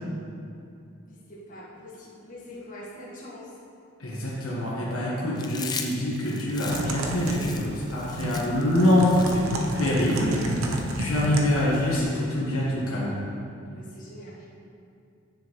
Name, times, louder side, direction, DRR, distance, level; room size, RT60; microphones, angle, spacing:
voice 1, 1.1-3.5 13.7-14.5, left 1 dB, 40° left, -7 dB, 1.5 m, -44 dB
voice 2, 4.0-13.1, left 1 dB, 85° left, -6 dB, 1.4 m, -25 dB
Chewing mastication, 5.4-10.8, left 6 dB, 20° left, 0.4 m, -39 dB
Typing, 6.6-12.0, right 1 dB, 90° right, 0.8 m, -30 dB
10.0 x 6.7 x 3.1 m, 2.5 s
head